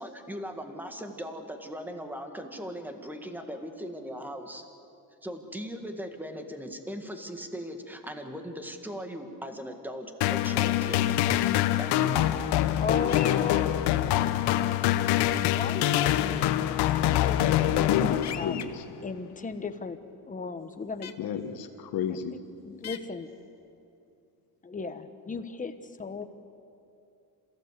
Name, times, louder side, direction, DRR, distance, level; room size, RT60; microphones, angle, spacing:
voice 1, 0.0-4.6 5.2-11.1 11.8-12.4, equal, 5° right, 5 dB, 1.8 m, -39 dB
sound 1, 10.2-18.7, left 12 dB, 85° left, 1.1 m, -25 dB
voice 2, 12.8-14.7 15.5-17.8 18.1-18.6 19.0-20.0 20.3-21.1 22.3-23.3 24.6-26.2, left 4 dB, 20° left, 8 dB, 1.2 m, -37 dB
sound 2, 13.1-13.4 15.6-15.7 18.2-18.6 21.0-21.1 22.8-23.0, left 10 dB, 45° left, 1.1 m, -38 dB
voice 3, 17.9-18.6 21.2-22.4, left 7 dB, 60° left, 7 dB, 1.7 m, -32 dB
27.5 x 16.0 x 8.2 m, 2.6 s
cardioid pair, 135°, 39 cm